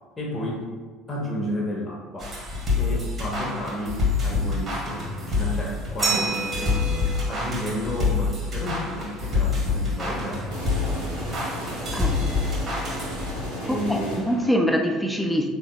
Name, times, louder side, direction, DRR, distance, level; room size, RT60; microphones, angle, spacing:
voice 1, 0.2-0.7 1.1-2.4 2.8-11.4 13.6-14.2, equal, 25° left, -3 dB, 0.8 m, -32 dB
sound 1, 2.2-13.5, left 4 dB, 35° right, 1.2 m, -27 dB
Glass, 6.0-8.5, right 3 dB, 15° right, 0.9 m, -31 dB
sound 2, 10.5-14.5, equal, 85° right, 1.4 m, -34 dB
voice 2, 13.7-15.5, equal, 5° left, 4 dB, 0.4 m, -24 dB
3.9 x 3.0 x 2.2 m, 1.4 s
figure-of-eight pair, 60°, 0 cm